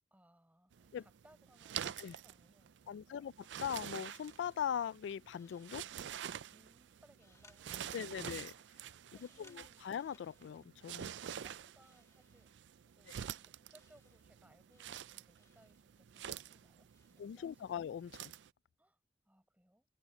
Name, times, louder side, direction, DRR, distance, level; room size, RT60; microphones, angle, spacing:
voice 1, 0.1-3.3 6.5-8.4 9.1-9.8 11.1-12.5 12.9-17.8 18.8-19.9, right 1 dB, 10° right, 4.9 m, -68 dB
sound 1, 0.7-18.5, right 9 dB, 80° right, 0.4 m, -48 dB
voice 2, 2.9-5.9 7.9-8.5 9.2-11.1 17.2-18.3, left 8 dB, 85° left, 0.3 m, -41 dB
sound 2, 3.4-17.3, left 3 dB, 15° left, 1.5 m, -72 dB
open air
head